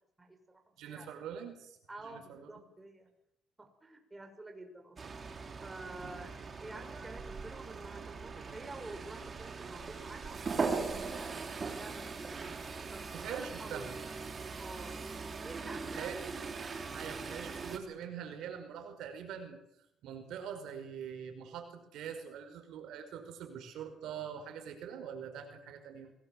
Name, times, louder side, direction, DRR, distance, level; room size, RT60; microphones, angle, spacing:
voice 1, 0.8-2.5 6.0-6.2 13.1-13.9 16.0-16.6 16.9-19.6 20.0-26.1, right 8 dB, 75° right, 7 dB, 5.1 m, -44 dB
voice 2, 1.9-3.1 3.6-5.2 5.6-10.4 10.9-12.3 12.9-14.0 14.6-15.0 15.4-16.2, right 2 dB, 15° right, 4 dB, 6.2 m, -49 dB
sound 1, 5.0-17.8, right 4 dB, 35° right, 3.8 m, -40 dB
26.0 x 20.5 x 7.8 m, 0.78 s
cardioid pair, 105°, 0 cm